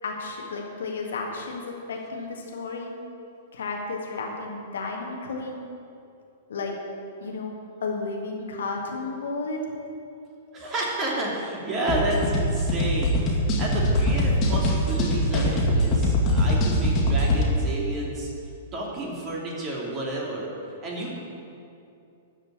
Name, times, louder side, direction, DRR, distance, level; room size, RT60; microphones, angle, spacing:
voice 1, 0.0-2.9 3.5-5.6 6.5-6.7 7.2-9.7, left 3 dB, 65° left, 0 dB, 1.8 m, -32 dB
voice 2, 10.5-13.2 13.6-18.3 18.7-20.5 20.8-21.2, right 2 dB, 25° right, -3 dB, 2.8 m, -30 dB
sound 1, 11.9-17.4, left 1 dB, 30° left, 2.3 m, -22 dB
13.0 x 5.2 x 8.6 m, 2.6 s
figure-of-eight pair, 105°, 0 cm